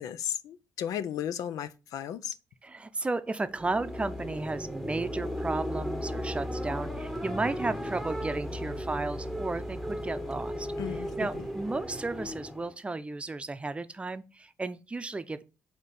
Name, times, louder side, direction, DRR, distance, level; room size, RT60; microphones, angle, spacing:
voice 1, 0.0-2.4 10.8-11.4, left 10 dB, 90° left, 0.5 m, -35 dB
voice 2, 2.6-15.4, right 3 dB, 20° right, 0.6 m, -34 dB
sound 1, 3.4-12.7, equal, 5° left, 0.9 m, -35 dB
7.6 x 2.9 x 5.4 m
cardioid pair, 100°, 6 cm